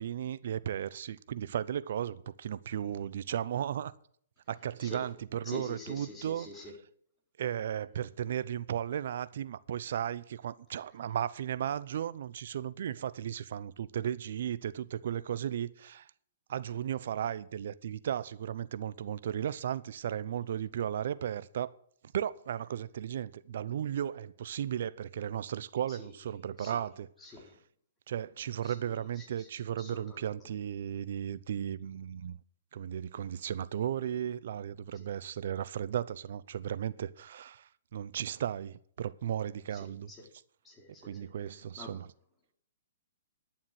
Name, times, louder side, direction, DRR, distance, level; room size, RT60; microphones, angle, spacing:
voice 1, 0.0-3.9 4.5-6.5 7.4-16.0 16.5-21.7 22.1-27.1 28.1-32.4 32.7-37.6 37.9-40.1 41.0-42.1, right 9 dB, 60° right, 0.7 m, -35 dB
voice 2, 5.4-6.7 25.9-26.8 27.2-27.6 28.6-30.3 34.9-35.1 39.7-40.3 40.6-41.3 41.8-42.0, left 3 dB, 15° left, 4.1 m, -48 dB
11.0 x 7.3 x 7.8 m
hypercardioid pair, 130°, 0 cm